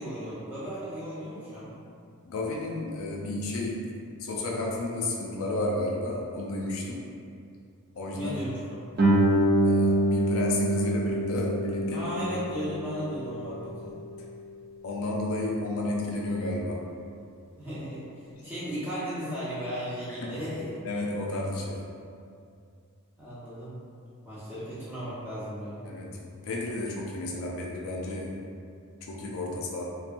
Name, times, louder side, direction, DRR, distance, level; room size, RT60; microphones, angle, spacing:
voice 1, 0.0-1.8 8.1-8.6 11.9-13.9 17.6-20.8 23.2-23.8 24.2-25.9, equal, 10° right, -12 dB, 0.7 m, -35 dB
voice 2, 2.2-3.9 4.2-7.0 8.0-8.3 9.6-12.1 14.8-16.8 20.2-20.3 20.8-21.8 25.8-28.3 29.1-29.9, left 2 dB, 65° left, -2 dB, 0.3 m, -32 dB
Guitar, 9.0-14.3, right 1 dB, 45° right, 0.4 m, -26 dB
2.8 x 2.2 x 2.5 m, 2.4 s
head